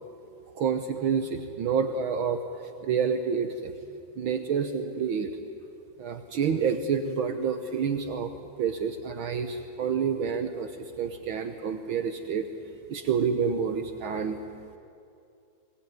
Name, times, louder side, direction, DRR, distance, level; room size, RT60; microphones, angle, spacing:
voice 1, 0.5-2.4 2.8-3.7 4.2-5.3 6.0-8.3 8.6-10.7 11.0-12.5 12.9-14.4, right 6 dB, 85° right, 7 dB, 1.1 m, -28 dB
22.0 x 18.5 x 9.4 m, 2.5 s
omnidirectional pair, 3.7 m